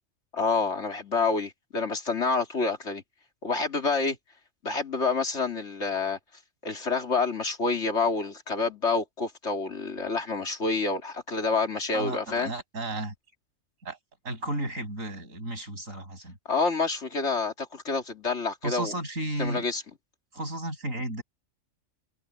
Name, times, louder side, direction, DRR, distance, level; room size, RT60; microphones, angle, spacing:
voice 1, 0.3-3.0 3.4-4.2 4.6-6.2 6.6-12.5 16.5-18.9 19.4-19.8, left 4 dB, 60° left, 3.0 m, -28 dB
voice 2, 11.9-13.1 13.8-14.0 14.2-16.4 18.6-19.6 20.3-21.2, right 1 dB, 90° right, 8.3 m, -33 dB
omnidirectional pair, 1.3 m